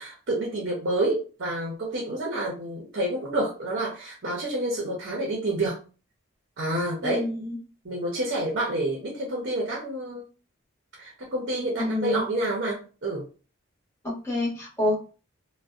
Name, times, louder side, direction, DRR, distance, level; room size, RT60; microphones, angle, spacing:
voice 1, 0.0-5.8 6.6-7.3 7.8-10.2 11.0-13.3, right 1 dB, 55° right, -2 dB, 0.6 m, -28 dB
voice 2, 7.0-7.6 11.8-12.3 14.0-15.1, left 2 dB, 15° left, -5 dB, 0.8 m, -28 dB
2.5 x 2.1 x 2.3 m, 0.36 s
head